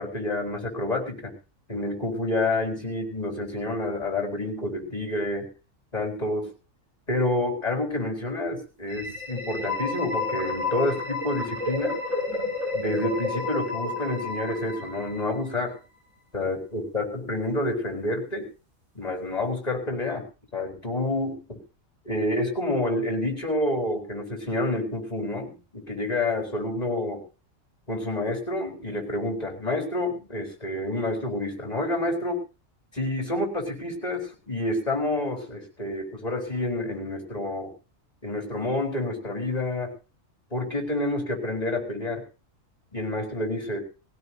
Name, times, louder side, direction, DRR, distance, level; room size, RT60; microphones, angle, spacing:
voice 1, 0.0-1.4 1.7-5.5 5.9-6.5 7.1-12.0 12.7-15.8 16.3-18.5 18.9-20.2 20.5-21.6 22.0-27.2 27.9-32.4 32.9-37.7 38.2-39.9 40.5-42.2 42.9-43.9, left 2 dB, 30° left, 2 dB, 4.5 m, -28 dB
sound 1, 8.8-15.6, left 2 dB, 85° right, 7.8 m, -31 dB
20.5 x 16.5 x 2.8 m, 0.33 s
omnidirectional pair, 1.4 m